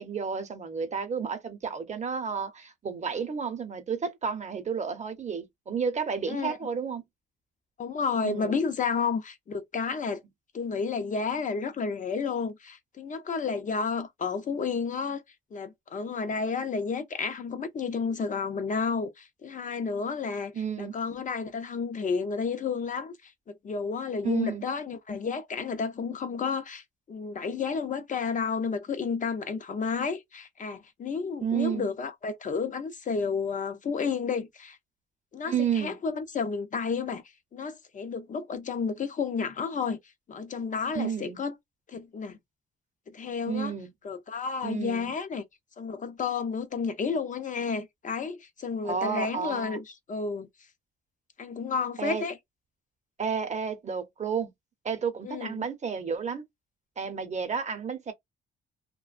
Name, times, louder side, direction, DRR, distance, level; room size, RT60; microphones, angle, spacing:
voice 1, 0.0-7.0 8.2-8.6 20.5-20.9 24.2-24.6 31.4-31.9 35.5-35.9 40.9-41.4 43.5-43.9 44.6-45.1 48.8-49.8 52.0-52.2 53.2-54.5 54.8-56.4 57.0-58.1, right 6 dB, 35° right, 0.7 m, -31 dB
voice 2, 6.3-6.6 7.8-10.2 10.5-15.2 15.5-34.8 35.3-37.2 37.5-40.0 40.3-41.5 41.9-42.4 43.1-43.7 44.0-45.4 45.8-50.5 51.4-52.4 55.2-55.6, left 5 dB, 40° left, 0.5 m, -31 dB
2.3 x 2.1 x 2.4 m
cardioid pair, 90°, 20 cm